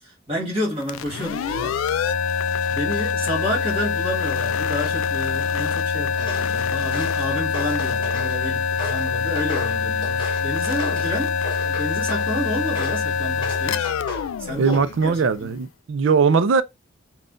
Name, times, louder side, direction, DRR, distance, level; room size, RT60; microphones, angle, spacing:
voice 1, 0.0-2.4 2.7-11.3 11.6-15.6, equal, 30° right, 1.6 m, -30 dB
sound 1, 0.8-15.4, left 6 dB, 85° left, 0.3 m, -25 dB
Walk footsteps, 6.1-6.5 6.9-8.4 8.8-11.1 11.4-12.3 12.7-13.0 13.4-14.3 14.6-15.1, left 2 dB, 25° left, 1.1 m, -35 dB
voice 2, 14.6-16.6, right 5 dB, 70° right, 0.4 m, -19 dB
5.4 x 2.3 x 2.5 m
head